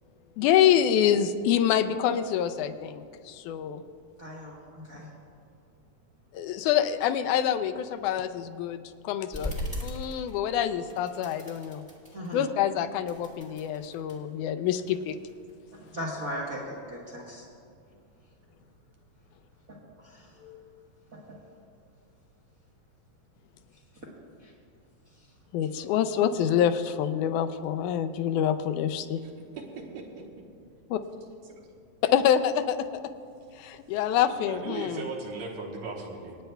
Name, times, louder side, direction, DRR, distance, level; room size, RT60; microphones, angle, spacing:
voice 1, 0.4-3.8 6.3-9.5 9.8-11.8 12.3-15.2 25.5-29.2 30.9-31.0 32.0-32.9 33.6-35.0, left 9 dB, 85° left, 9 dB, 2.0 m, -26 dB
voice 2, 4.2-5.1 12.1-12.4 15.9-17.4 19.7-20.6 24.4-24.5, equal, 50° right, -4 dB, 1.0 m, -38 dB
sound 1, 9.3-10.6 10.9-12.5 12.9-14.2 14.7-15.9, left 1 dB, 10° left, 0.3 m, -38 dB
voice 3, 29.6-30.0 31.6-31.7 34.0-36.4, right 4 dB, 70° right, 0 dB, 2.4 m, -38 dB
26.0 x 9.3 x 2.3 m, 2.3 s
omnidirectional pair, 3.5 m